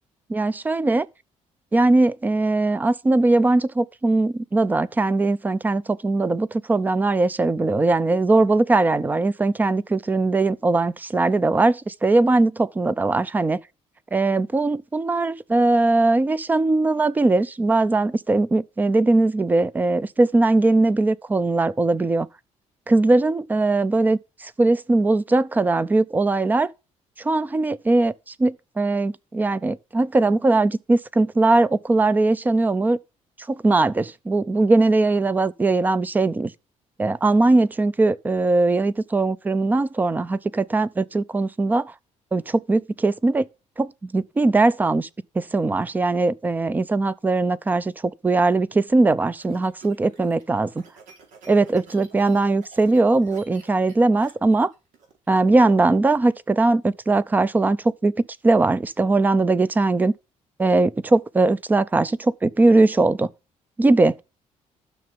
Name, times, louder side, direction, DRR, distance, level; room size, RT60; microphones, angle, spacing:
voice 1, 0.3-1.1 1.7-13.6 14.1-22.3 22.9-26.7 27.2-28.1 28.4-33.0 33.5-36.5 37.0-41.9 42.3-43.5 43.8-45.1 45.3-50.8 51.5-54.7 55.3-58.1 58.4-60.1 60.6-63.3 63.8-64.2, right 2 dB, 15° right, 0.5 m, -20 dB
sound 1, 48.9-55.4, right 4 dB, 85° right, 4.6 m, -51 dB
12.5 x 6.7 x 5.4 m
cardioid pair, 180°, 13 cm